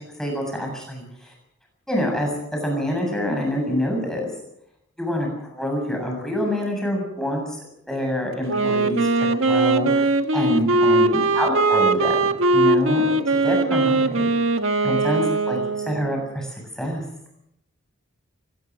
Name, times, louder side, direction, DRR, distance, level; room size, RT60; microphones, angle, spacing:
voice 1, 0.2-1.3 1.9-2.3 2.6-4.3 5.0-7.6 7.9-9.1 9.4-14.3 14.8-17.0, equal, 5° left, 1 dB, 7.4 m, -26 dB
Wind instrument woodwind instrument, 8.5-16.2, right 2 dB, 75° right, 1.5 m, -20 dB
24.0 x 20.0 x 6.3 m, 0.80 s
head